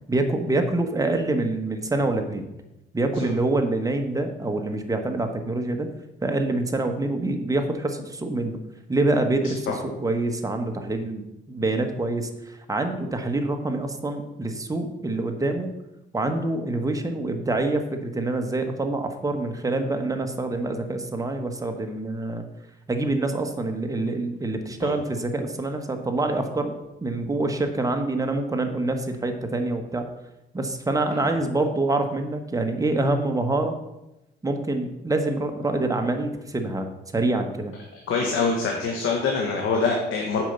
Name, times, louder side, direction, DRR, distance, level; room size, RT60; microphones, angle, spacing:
voice 1, 0.1-2.5 2.9-5.9 6.2-8.6 8.9-15.7 16.1-22.4 22.9-26.7 27.0-30.1 30.5-33.8 34.4-37.7, right 2 dB, 15° right, 4 dB, 1.2 m, -26 dB
voice 2, 38.1-40.4, left 4 dB, 80° left, 0 dB, 1.4 m, -24 dB
7.5 x 5.2 x 6.7 m, 0.93 s
cardioid pair, 90°, 20 cm